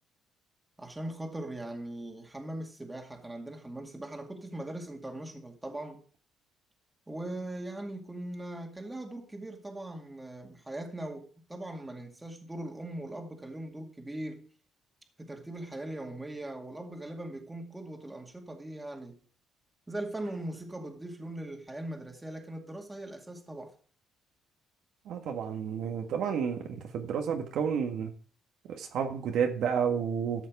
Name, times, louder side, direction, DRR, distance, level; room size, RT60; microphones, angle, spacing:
voice 1, 0.8-6.0 7.1-14.5 15.2-19.2 19.9-23.7, right 1 dB, 15° right, 2.3 m, -40 dB
voice 2, 25.1-26.6 26.9-28.1 28.7-30.5, right 7 dB, 70° right, 1.7 m, -30 dB
13.0 x 6.5 x 4.8 m
cardioid pair, 95°, 0 cm